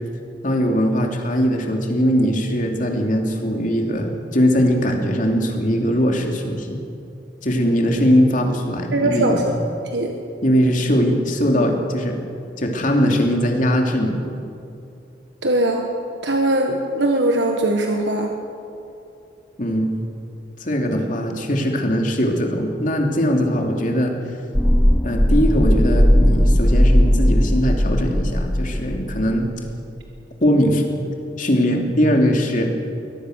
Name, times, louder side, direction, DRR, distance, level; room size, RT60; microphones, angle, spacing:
voice 1, 0.4-6.8 7.4-9.4 10.4-12.2 12.6-14.2 19.6-19.9 20.6-24.2 25.0-29.5 30.4-30.8 31.4-32.7, equal, 45° left, 2 dB, 2.8 m, -20 dB
voice 2, 8.9-9.5 9.9-10.1 15.4-15.8 16.2-18.3, right 1 dB, 75° right, 2 dB, 1.6 m, -20 dB
sound 1, 24.5-29.4 29.7-29.8, equal, 5° left, 0.6 m, -17 dB
23.0 x 18.0 x 6.6 m, 2.6 s
head